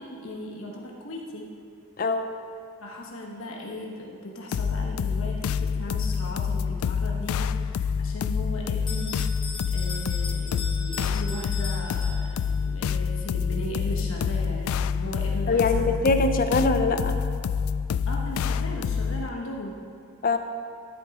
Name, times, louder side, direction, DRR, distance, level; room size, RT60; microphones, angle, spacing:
voice 1, 0.0-1.5 2.8-9.2 9.7-16.1 18.0-19.8, equal, 75° left, -1 dB, 1.3 m, -37 dB
voice 2, 2.0-2.3 15.5-17.2 20.2-20.4, left 3 dB, 45° left, 7 dB, 0.6 m, -23 dB
sound 1, 4.5-19.3, left 6 dB, 90° left, 0.3 m, -27 dB
Bell, 8.9-12.6, left 4 dB, 20° left, 1.8 m, -38 dB
13.0 x 8.4 x 4.9 m, 2.3 s
head